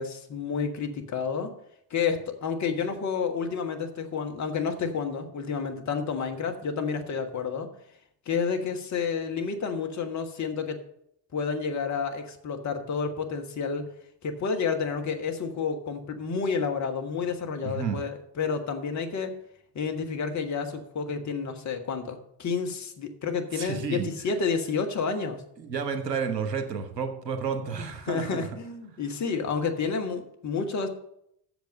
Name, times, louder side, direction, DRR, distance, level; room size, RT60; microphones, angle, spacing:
voice 1, 0.0-1.5 1.9-7.7 8.3-10.8 11.3-13.9 14.2-19.3 19.7-25.4 28.0-30.9, left 5 dB, 35° left, 5 dB, 1.4 m, -30 dB
voice 2, 17.6-18.0 23.5-24.1 25.6-28.5, right 6 dB, 80° right, 8 dB, 1.1 m, -31 dB
8.1 x 6.8 x 6.5 m, 0.75 s
figure-of-eight pair, 55°, 49 cm